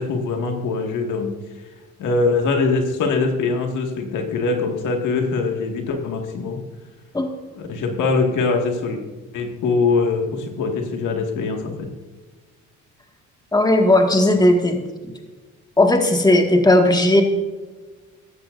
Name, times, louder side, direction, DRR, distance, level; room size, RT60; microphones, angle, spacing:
voice 1, 0.0-1.3 2.0-6.6 7.6-9.0 9.3-11.9, left 4 dB, 75° left, 3 dB, 2.0 m, -22 dB
voice 2, 13.5-14.8 15.8-17.2, left 1 dB, 15° left, 3 dB, 1.9 m, -16 dB
15.0 x 13.0 x 2.6 m, 1.3 s
cardioid pair, 90°, 30 cm